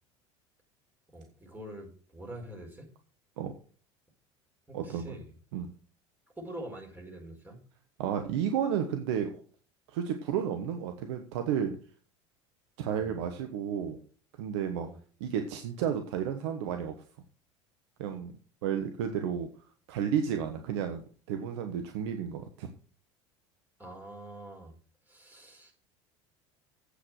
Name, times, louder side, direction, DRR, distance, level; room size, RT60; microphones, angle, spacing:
voice 1, 1.1-2.9 4.7-5.4 6.3-7.6 12.9-13.1 14.8-15.0 23.8-24.7 25.1-25.7, right 1 dB, 10° right, 0 dB, 5.1 m, -45 dB
voice 2, 4.7-5.2 5.5-5.7 8.0-9.3 9.9-11.8 12.8-14.0 14.4-14.9 15.2-16.9 18.0-18.3 18.6-19.5 19.9-22.7, right 8 dB, 65° right, 6 dB, 1.2 m, -32 dB
8.4 x 8.3 x 6.3 m, 0.42 s
hypercardioid pair, 70°, 15 cm